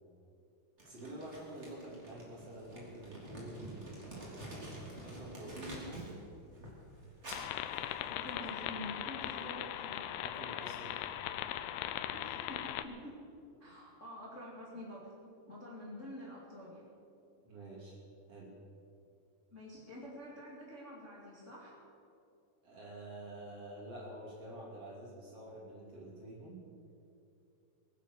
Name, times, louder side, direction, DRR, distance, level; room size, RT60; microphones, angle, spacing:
Crumpling crinkling, 0.8-6.2 6.5-8.5, right 1 dB, 15° right, 3.2 m, -49 dB
voice 1, 0.8-4.6 5.0-6.2 10.2-11.0 17.4-18.0 18.3-18.5 22.6-26.6, right 1 dB, 40° right, -4 dB, 3.4 m, -48 dB
sound 1, 7.3-12.8, left 12 dB, 80° left, 2.6 m, -39 dB
voice 2, 8.1-10.1 12.1-13.2 13.6-16.8 19.5-21.8, left 1 dB, 20° left, -5 dB, 2.1 m, -48 dB
22.0 x 10.0 x 6.5 m, 2.7 s
omnidirectional pair, 4.9 m